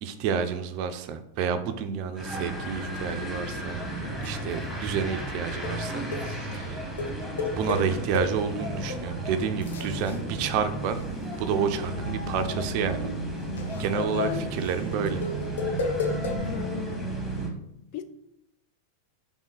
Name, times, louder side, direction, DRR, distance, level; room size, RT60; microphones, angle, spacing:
voice 1, 0.0-6.8 7.6-11.0 11.4-13.1 13.8-15.2, right 7 dB, 45° right, 0.4 m, -30 dB
sound 1, 2.1-17.5, right 1 dB, ahead, 1.3 m, -33 dB
sound 2, 4.2-4.5 5.1-5.2 5.6-5.8 6.1-6.3 7.0-8.5 8.9-9.0 9.5-11.4 11.7-16.4, left 4 dB, 65° left, 0.7 m, -33 dB
voice 2, 16.4-17.1 17.9-18.0, left 9 dB, 45° left, 0.3 m, -37 dB
3.7 x 3.5 x 3.8 m
figure-of-eight pair, 90°, 0 cm